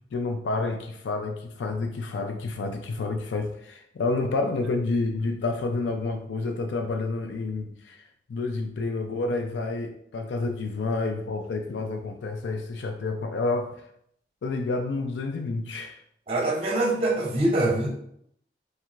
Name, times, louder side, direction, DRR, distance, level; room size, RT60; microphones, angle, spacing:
voice 1, 0.1-8.0 8.3-13.7 14.4-16.0, left 3 dB, 90° left, 5 dB, 0.4 m, -29 dB
voice 2, 16.3-17.9, right 2 dB, 30° right, 0 dB, 0.6 m, -24 dB
4.5 x 3.3 x 2.4 m, 0.71 s
head